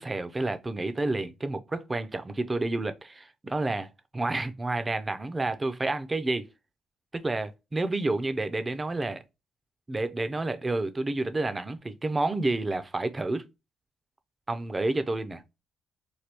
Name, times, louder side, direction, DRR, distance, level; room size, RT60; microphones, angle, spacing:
voice 1, 0.0-3.9 4.1-6.5 7.1-9.2 9.9-13.4 14.5-15.4, right 2 dB, 20° right, 0.4 m, -29 dB
3.3 x 2.2 x 2.9 m
cardioid pair, 90°, 0 cm